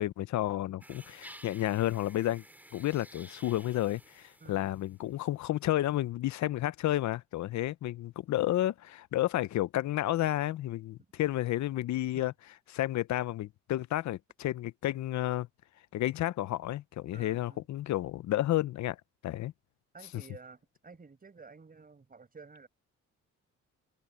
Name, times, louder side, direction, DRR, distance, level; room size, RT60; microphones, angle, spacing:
voice 1, 0.0-2.4 2.7-12.3 12.7-15.5 15.9-19.0 19.2-19.5 20.1-20.2, left 14 dB, 65° left, 0.7 m, -31 dB
sound 1, 0.8-5.2, right 1 dB, 5° right, 3.5 m, -53 dB
voice 2, 17.1-17.6 19.9-22.7, right 4 dB, 30° right, 5.7 m, -52 dB
cardioid pair, 90°, 30 cm